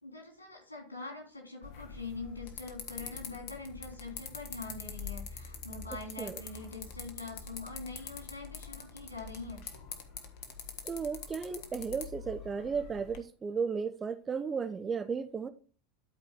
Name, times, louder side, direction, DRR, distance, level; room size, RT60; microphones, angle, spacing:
voice 1, 0.0-9.6, left 3 dB, 90° left, 2.9 m, -44 dB
sound 1, 1.6-13.2, left 6 dB, 55° left, 1.5 m, -45 dB
voice 2, 10.8-15.5, right 5 dB, 25° right, 0.8 m, -34 dB
12.0 x 4.8 x 3.6 m
figure-of-eight pair, 80°, 0 cm